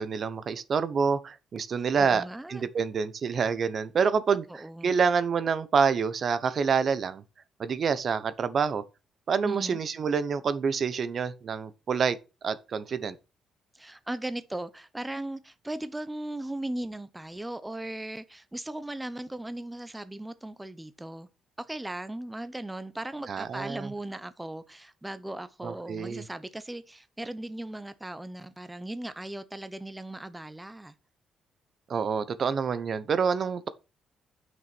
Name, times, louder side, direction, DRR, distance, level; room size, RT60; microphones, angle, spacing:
voice 1, 0.0-2.2 2.5-7.2 7.6-8.8 9.3-12.2 12.4-13.2 23.3-23.9 25.6-26.2 31.9-33.7, right 6 dB, 50° right, 0.9 m, -27 dB
voice 2, 2.0-2.6 4.5-5.0 9.4-9.8 13.7-21.3 21.6-30.9, right 1 dB, 10° right, 0.9 m, -37 dB
9.0 x 6.3 x 6.0 m
cardioid pair, 90°, 0 cm